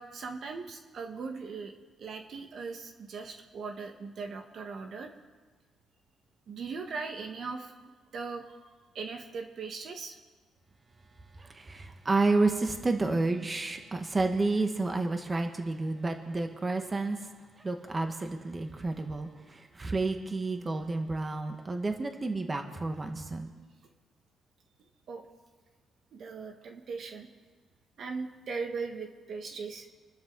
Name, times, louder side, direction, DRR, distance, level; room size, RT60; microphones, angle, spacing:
voice 1, 0.0-1.7 2.0-5.1 6.5-7.7 8.1-8.4 8.9-10.2 25.1-25.3 26.1-27.3 28.0-29.9, right 4 dB, 60° right, 4 dB, 1.6 m, -39 dB
voice 2, 11.4-17.2 17.6-23.5, right 3 dB, 25° right, 5 dB, 1.7 m, -30 dB
27.0 x 12.5 x 4.1 m, 1.4 s
cardioid pair, 90°, 0 cm